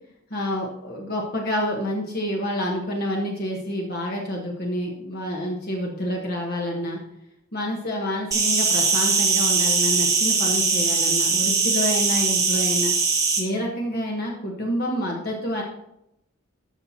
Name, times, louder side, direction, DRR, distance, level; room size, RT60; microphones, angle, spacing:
voice 1, 0.3-7.0 7.5-12.9 13.4-15.6, left 1 dB, 45° left, -1 dB, 1.1 m, -28 dB
Insect, 8.3-13.4, right 4 dB, 15° right, 1.1 m, -21 dB
13.5 x 5.8 x 2.8 m, 0.81 s
head